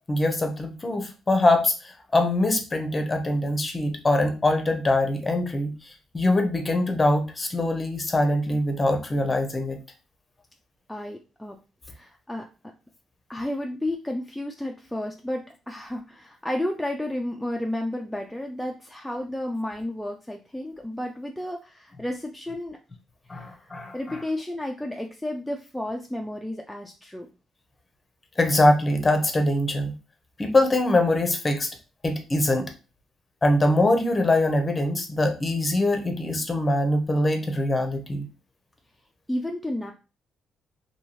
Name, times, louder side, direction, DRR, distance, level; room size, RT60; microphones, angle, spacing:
voice 1, 0.1-5.7 6.1-9.8 23.3-24.2 28.4-29.9 30.4-31.7 32.0-32.7 33.4-38.3, left 1 dB, 25° left, 5 dB, 0.7 m, -23 dB
voice 2, 10.9-11.6 11.9-12.5 13.3-22.8 23.3-27.3 39.3-39.9, left 1 dB, 5° left, 1 dB, 0.4 m, -32 dB
2.7 x 2.6 x 2.9 m, 0.32 s
cardioid pair, 90°, 0 cm